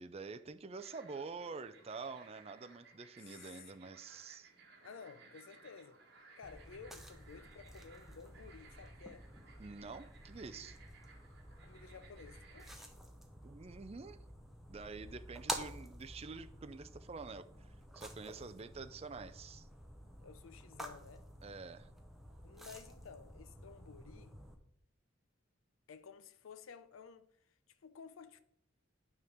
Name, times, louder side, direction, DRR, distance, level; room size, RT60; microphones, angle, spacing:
voice 1, 0.0-4.5 9.6-10.8 13.4-14.2 14.7-19.7 21.4-21.9, right 4 dB, 30° right, 0.4 m, -47 dB
sound 1, 0.8-12.8, right 4 dB, 50° right, 1.5 m, -61 dB
voice 2, 3.2-4.0 4.8-6.0 6.4-9.3 11.6-12.9 20.2-21.2 22.4-24.3 25.9-27.3 27.7-28.4, left 6 dB, 80° left, 0.5 m, -54 dB
sound 2, 6.4-24.5, right 1 dB, ahead, 0.8 m, -50 dB
9.3 x 3.6 x 6.4 m
head